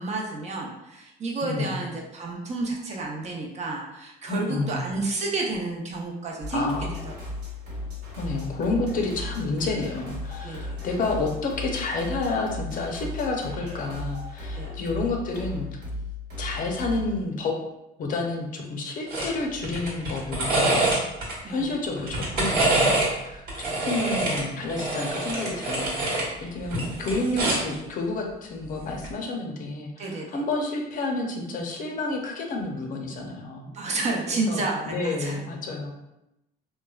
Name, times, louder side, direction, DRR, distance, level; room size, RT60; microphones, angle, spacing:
voice 1, 0.0-6.7 7.0-7.1 10.4-10.8 14.5-14.7 21.4-21.6 30.0-30.3 33.7-35.4, right 3 dB, 40° right, 0 dB, 0.6 m, -30 dB
voice 2, 1.4-1.8 4.3-4.9 6.5-6.9 8.2-15.7 16.4-17.5 18.0-20.9 21.5-33.7 34.3-35.9, left 3 dB, 50° left, 1 dB, 0.6 m, -30 dB
sound 1, 6.4-17.2, left 2 dB, 85° right, 1.2 m, -36 dB
sound 2, 19.1-19.3 19.6-21.3 22.0-23.1 23.5-26.3 26.6-27.7 28.9-29.1, right 2 dB, 65° right, 1.2 m, -25 dB
3.1 x 2.2 x 2.3 m, 0.89 s
cardioid pair, 110°, 17 cm